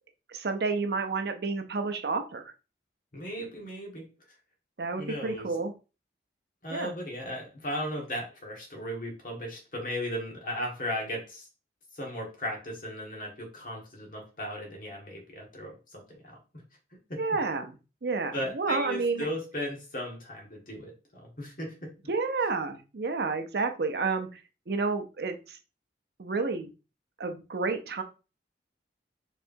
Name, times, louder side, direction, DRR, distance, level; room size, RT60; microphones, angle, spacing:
voice 1, 0.3-2.5 4.8-5.7 6.7-6.9 17.2-19.3 22.1-24.4 24.7-25.6 26.2-26.7 27.2-28.0, right 4 dB, 60° right, 6 dB, 0.6 m, -30 dB
voice 2, 3.1-4.1 5.0-5.5 6.6-11.5 11.9-16.4 17.1-17.2 18.3-21.9, equal, 50° left, -1 dB, 1.5 m, -36 dB
4.5 x 3.3 x 2.6 m, 0.31 s
head